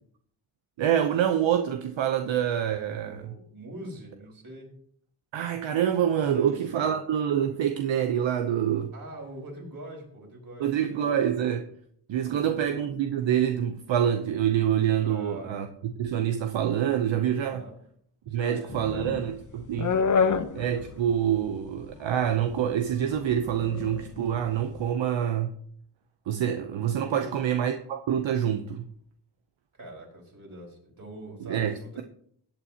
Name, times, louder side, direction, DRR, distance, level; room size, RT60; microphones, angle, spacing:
voice 1, 0.8-3.3 5.3-8.9 10.6-11.7 12.1-15.7 16.0-17.6 18.3-20.0 20.5-25.5 26.3-28.8 31.4-32.0, right 9 dB, 80° right, 0.8 m, -26 dB
voice 2, 3.0-4.7 6.1-7.0 8.9-11.1 12.2-12.7 15.0-15.6 17.4-17.8 18.3-19.2 19.5-19.7 20.0-20.3 27.1-27.4 29.7-32.0, right 1 dB, 50° right, 4.6 m, -44 dB
sound 1, 18.7-24.8, left 5 dB, 45° left, 0.8 m, -29 dB
17.0 x 8.5 x 2.9 m
cardioid pair, 80°, 45 cm